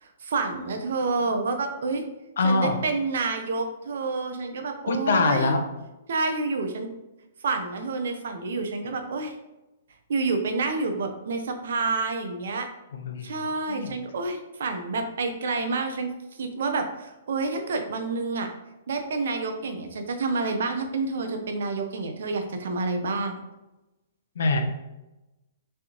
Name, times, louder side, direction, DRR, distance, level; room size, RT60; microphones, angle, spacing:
voice 1, 0.0-2.1 2.4-5.5 6.1-6.9 7.4-9.4 10.1-12.7 13.2-16.1 16.4-18.5 18.9-23.4, right 3 dB, 70° right, 5 dB, 0.6 m, -28 dB
voice 2, 2.4-2.8 4.9-5.6 12.9-13.4 13.7-13.9 24.4-24.6, left 3 dB, 70° left, 6 dB, 0.6 m, -24 dB
3.5 x 3.3 x 2.9 m, 0.98 s
hypercardioid pair, 135°, 0 cm